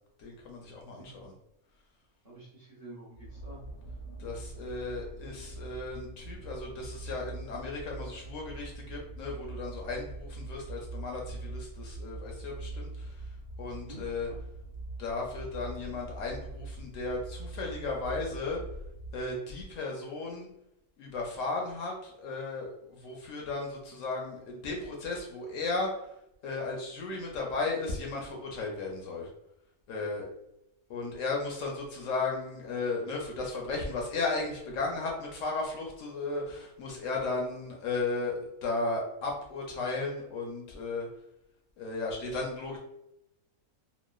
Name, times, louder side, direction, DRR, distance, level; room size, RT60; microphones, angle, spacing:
voice 1, 0.2-1.3 4.2-14.3 15.0-18.6 19.1-20.5 21.0-25.9 26.4-29.3 29.9-30.3 30.9-38.3 38.6-41.1 41.8-42.8, left 3 dB, 70° left, 0 dB, 0.9 m, -35 dB
voice 2, 2.2-3.6 13.8-14.4, right 1 dB, 50° right, -7 dB, 0.5 m, -49 dB
sound 1, 3.1-19.4, right 2 dB, 85° left, 1.2 m, -43 dB
3.0 x 2.1 x 2.2 m, 0.84 s
omnidirectional pair, 1.6 m